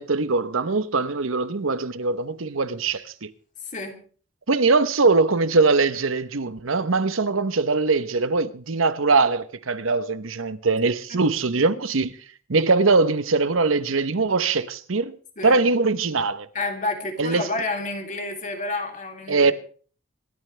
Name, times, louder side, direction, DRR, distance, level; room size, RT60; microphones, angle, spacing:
voice 1, 0.0-3.3 4.5-12.1 12.5-15.2 15.4-16.5 17.2-17.4 19.3-19.5, right 3 dB, 85° right, 0.9 m, -22 dB
voice 2, 3.6-4.0 11.1-11.2 15.4-15.6 16.5-19.5, left 2 dB, 40° left, 3.0 m, -30 dB
27.0 x 12.5 x 3.3 m
head